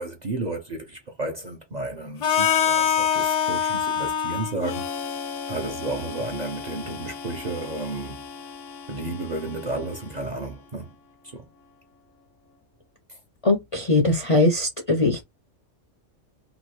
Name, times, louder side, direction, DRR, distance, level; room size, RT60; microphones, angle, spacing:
voice 1, 0.0-4.9 5.5-8.2 8.9-10.9 11.2-11.5 13.1-13.2, right 2 dB, 45° right, 0.6 m, -32 dB
Harmonica, 2.2-10.1, left 8 dB, 70° left, 0.9 m, -27 dB
voice 2, 13.4-15.2, left 2 dB, 40° left, 0.5 m, -21 dB
2.9 x 2.4 x 3.1 m
omnidirectional pair, 1.3 m